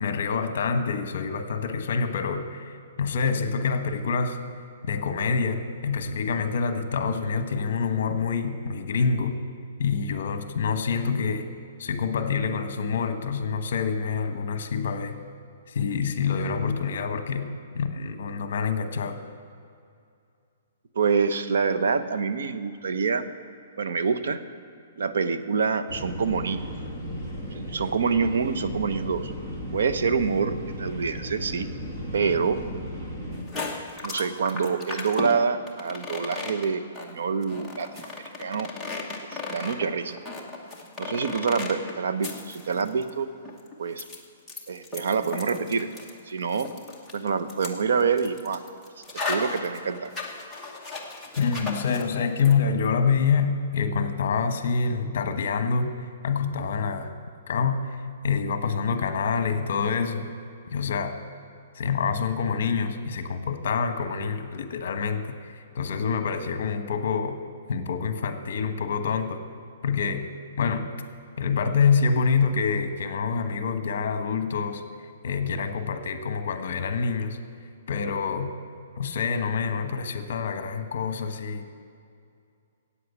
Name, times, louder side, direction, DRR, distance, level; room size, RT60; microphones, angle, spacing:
voice 1, 0.0-4.4 4.8-9.4 9.8-11.5 11.8-15.2 15.7-19.2 51.4-56.0 56.2-57.1 57.5-58.0 58.2-60.3 60.7-61.2 61.7-67.4 67.7-69.4 69.8-70.3 70.6-70.9 71.4-74.8 75.2-77.4 77.9-78.5 79.0-81.6, left 5 dB, 50° left, 8 dB, 1.1 m, -26 dB
voice 2, 20.9-23.2 23.8-24.4 25.0-26.6 27.5-29.3 29.7-31.7 32.1-32.6 34.0-37.9 38.4-38.7 39.2-40.2 41.0-43.3 43.8-44.0 44.7-45.9 46.3-46.7 47.1-48.6 49.1-50.1, right 5 dB, 75° right, 11 dB, 0.8 m, -26 dB
sound 1, 25.9-33.4, equal, 20° right, 1.9 m, -35 dB
sound 2, 33.3-52.1 52.4-52.5, left 3 dB, ahead, 0.9 m, -36 dB
11.0 x 8.4 x 8.2 m, 2.4 s
hypercardioid pair, 175°, 0 cm